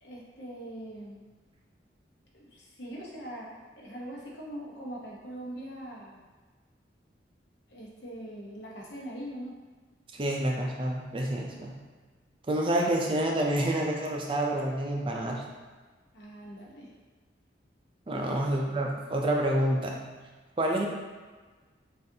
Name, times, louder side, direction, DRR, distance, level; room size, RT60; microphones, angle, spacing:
voice 1, 0.0-1.3 2.3-6.2 7.7-9.6 16.1-16.9 18.2-18.4, right 1 dB, 70° left, -4 dB, 1.0 m, -42 dB
voice 2, 10.1-11.8 12.5-15.4 18.1-20.0 20.6-20.9, right 1 dB, 30° right, 0 dB, 0.4 m, -28 dB
6.2 x 2.5 x 2.7 m, 1.4 s
head